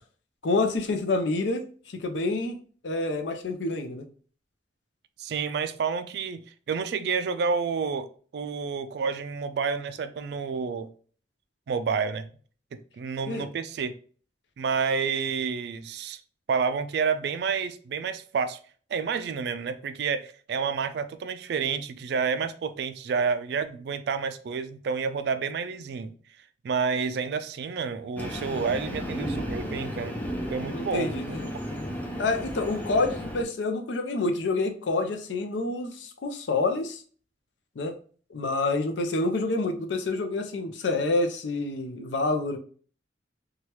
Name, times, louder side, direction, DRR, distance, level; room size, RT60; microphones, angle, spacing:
voice 1, 0.4-1.6 1.9-2.6 2.8-4.0 13.3-13.5 30.7-31.5 32.2-37.0 37.8-37.9 38.3-42.6, left 3 dB, 85° left, 0.5 m, -27 dB
voice 2, 5.2-8.1 8.3-10.9 11.7-12.3 12.7-13.9 14.6-16.2 16.5-18.6 18.9-26.1 26.6-30.1 30.5-31.4, right 5 dB, 65° right, 0.3 m, -29 dB
Train, 28.2-33.4, equal, 10° left, 0.4 m, -34 dB
2.9 x 2.3 x 3.1 m
head